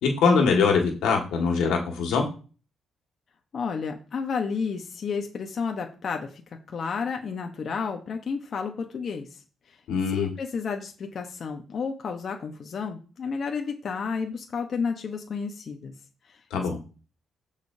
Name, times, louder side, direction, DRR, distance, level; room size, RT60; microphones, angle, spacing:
voice 1, 0.0-2.2 9.9-10.3 16.5-16.8, left 5 dB, 90° left, 1 dB, 2.0 m, -22 dB
voice 2, 3.5-6.4 6.7-9.4 9.7-9.8 10.1-15.9 16.3-16.4, left 5 dB, 50° left, 3 dB, 1.1 m, -31 dB
15.0 x 5.1 x 2.8 m, 0.36 s
cardioid pair, 90°, 0 cm